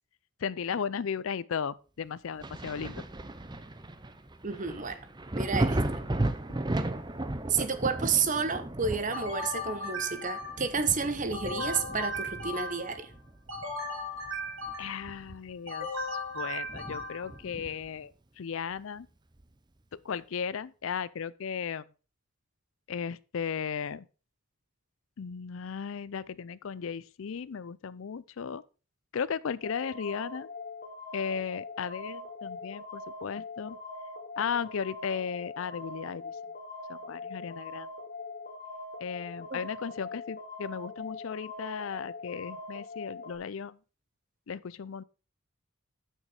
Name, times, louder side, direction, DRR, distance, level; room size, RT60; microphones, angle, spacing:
voice 1, 0.4-3.0 14.8-16.1 16.3-19.1 19.9-21.8 22.9-24.1 25.2-28.6 29.1-30.5 31.1-33.8 34.4-36.4 36.9-37.9 39.0-43.8 44.5-45.0, left 6 dB, 65° left, 0.4 m, -35 dB
Thunder, 2.4-13.8 14.2-15.7 16.0-16.1 16.7-18.0 19.4-19.5, right 1 dB, 20° right, 0.6 m, -35 dB
voice 2, 4.4-5.0 5.3-5.8 7.5-13.1 39.5-39.6, right 5 dB, 35° right, 1.0 m, -30 dB
sound 1, 9.1-10.8 11.3-13.0 13.5-15.1 15.7-17.4, left 1 dB, 65° right, 2.8 m, -37 dB
sound 2, 29.6-43.4, left 3 dB, 45° left, 1.6 m, -42 dB
9.0 x 6.5 x 4.8 m
head